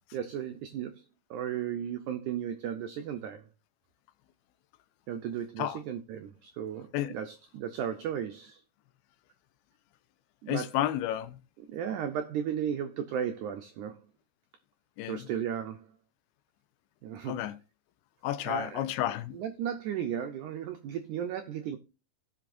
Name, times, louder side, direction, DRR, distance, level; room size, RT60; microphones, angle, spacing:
voice 1, 0.0-3.5 5.1-8.6 10.4-10.7 11.6-14.0 15.1-15.9 17.0-17.4 18.4-18.9 19.3-21.8, right 9 dB, 85° right, 1.7 m, -35 dB
voice 2, 10.5-11.4 15.0-15.2 17.3-17.5 18.2-19.3, left 12 dB, 90° left, 2.6 m, -31 dB
17.5 x 6.0 x 2.5 m
omnidirectional pair, 4.4 m